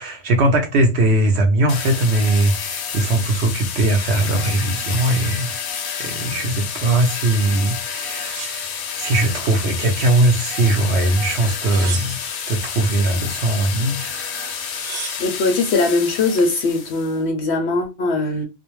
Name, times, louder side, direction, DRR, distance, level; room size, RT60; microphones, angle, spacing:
voice 1, 0.0-5.6 6.0-8.7 9.0-12.2 12.5-14.6, right 2 dB, 60° right, 0.8 m, -20 dB
sound 1, 1.7-17.2, left 7 dB, 90° left, 1.1 m, -29 dB
sound 2, 8.1-9.5 9.9-10.7 11.4-12.5 14.1-14.2 14.4-15.4 16.1-16.6, right 7 dB, 85° right, 1.1 m, -36 dB
voice 2, 15.2-18.4, left 3 dB, 65° left, 0.7 m, -20 dB
2.5 x 2.0 x 2.9 m
omnidirectional pair, 1.4 m